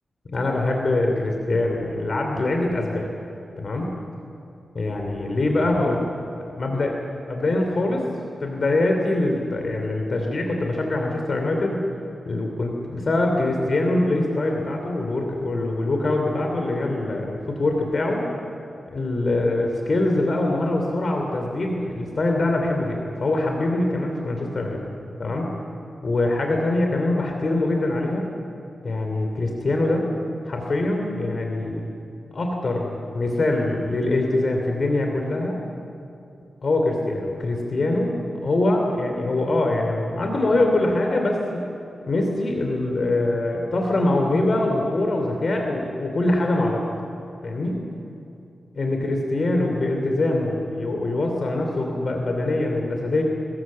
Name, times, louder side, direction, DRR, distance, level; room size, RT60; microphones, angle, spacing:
voice 1, 0.3-3.1 3.6-3.9 4.7-6.0 6.5-6.9 7.3-8.0 8.4-11.8 12.2-18.2 18.9-24.8 25.2-25.5 26.0-28.3 28.8-30.1 30.5-31.9 32.3-35.6 36.6-38.1 38.4-41.6 42.1-46.8 47.4-47.8 48.7-53.2, left 2 dB, 50° left, 2 dB, 2.9 m, -23 dB
23.5 x 21.5 x 7.6 m, 2.7 s
wide cardioid pair, 135°, 0 cm